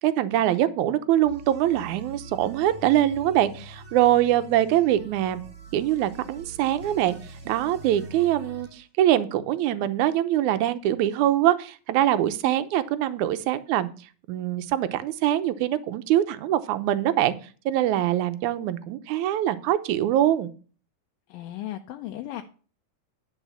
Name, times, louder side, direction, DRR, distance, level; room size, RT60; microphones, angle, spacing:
voice 1, 0.0-5.4 5.7-7.2 7.5-13.9 14.3-17.3 17.7-20.5, right 12 dB, 75° right, 12 dB, 1.9 m, -23 dB
sound 1, 1.2-8.8, right 2 dB, 35° right, 1.1 m, -44 dB
voice 2, 21.3-22.4, left 13 dB, 85° left, 4 dB, 2.4 m, -36 dB
11.5 x 4.5 x 7.0 m, 0.38 s
omnidirectional pair, 4.0 m